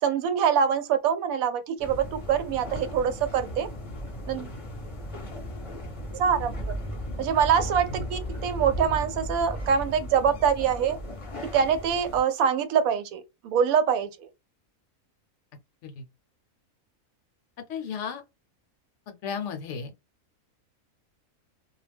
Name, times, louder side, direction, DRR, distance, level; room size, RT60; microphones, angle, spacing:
voice 1, 0.0-3.7 4.3-4.5 6.1-6.7 7.2-11.0 11.5-14.3, right 7 dB, 80° right, 1.0 m, -24 dB
sound 1, 1.8-12.2, equal, 30° left, 0.6 m, -36 dB
voice 2, 17.7-18.2 19.1-19.9, left 6 dB, 65° left, 0.9 m, -34 dB
2.4 x 2.1 x 3.3 m
omnidirectional pair, 1.5 m